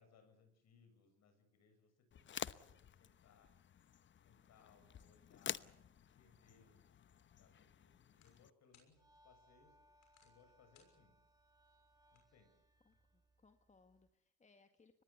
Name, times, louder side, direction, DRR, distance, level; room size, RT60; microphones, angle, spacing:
voice 1, 0.0-3.6 4.2-11.2 12.1-12.5, left 5 dB, 60° left, 7 dB, 7.7 m, -70 dB
sound 1, 2.1-8.5, left 9 dB, 40° left, 0.9 m, -50 dB
sound 2, 6.9-13.0, left 7 dB, 75° left, 6.3 m, -77 dB
sound 3, 8.9-14.1, equal, 10° right, 5.2 m, -72 dB
voice 2, 12.8-15.0, left 4 dB, 25° left, 7 dB, 2.0 m, -70 dB
24.0 x 20.0 x 8.4 m, 0.73 s
supercardioid pair, 80°, 30 cm